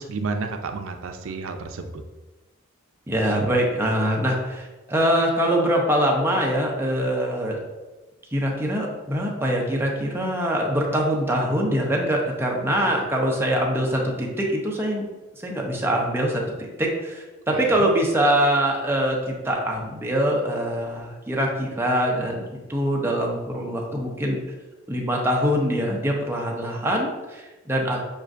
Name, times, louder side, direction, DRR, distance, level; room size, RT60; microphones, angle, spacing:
voice 1, 0.0-2.0 17.5-17.9, right 4 dB, 80° right, 6 dB, 0.5 m, -31 dB
voice 2, 3.1-7.6 8.3-15.0 15.4-22.4 22.7-24.4 24.9-28.0, equal, 10° right, -1 dB, 0.6 m, -23 dB
6.4 x 2.5 x 2.4 m, 1.1 s
head